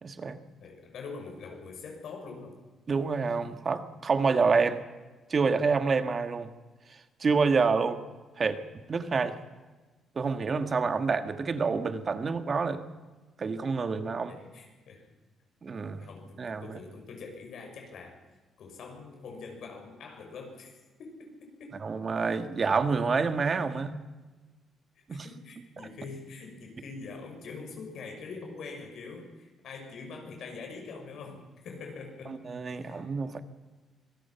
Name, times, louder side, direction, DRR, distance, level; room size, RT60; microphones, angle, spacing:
voice 1, 0.0-0.4 2.9-4.8 5.3-6.5 7.2-8.0 8.4-8.6 8.9-9.4 10.1-12.8 13.4-14.3 15.6-16.0 16.4-16.8 21.8-24.0 25.1-25.2 32.3-33.4, right 4 dB, 40° right, 9 dB, 1.6 m, -27 dB
voice 2, 0.6-2.6 14.3-15.1 16.0-18.2 18.6-20.7 21.0-21.8 25.1-32.4 32.7-33.1, left 4 dB, 70° left, 2 dB, 6.3 m, -44 dB
25.0 x 18.0 x 5.8 m, 1.3 s
cardioid pair, 90°, 0 cm